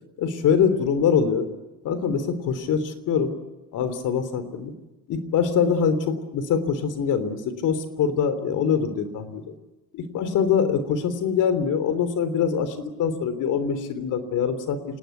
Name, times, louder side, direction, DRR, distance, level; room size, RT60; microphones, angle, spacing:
voice 1, 0.2-1.5 1.8-3.3 3.7-4.7 5.1-9.5 9.9-14.8, left 7 dB, 80° left, 11 dB, 3.5 m, -24 dB
27.0 x 19.0 x 9.4 m, 1.1 s
cardioid pair, 90°, 30 cm